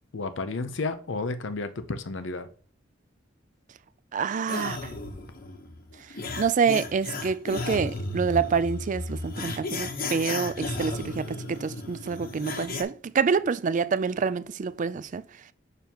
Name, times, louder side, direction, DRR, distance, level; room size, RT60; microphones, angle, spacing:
voice 1, 0.1-2.5, left 3 dB, 70° left, 0.7 m, -32 dB
voice 2, 4.1-4.8 6.4-15.2, right 5 dB, 40° right, 0.4 m, -27 dB
sound 1, 4.5-12.8, left 2 dB, 50° left, 1.0 m, -34 dB
7.1 x 6.7 x 2.9 m
head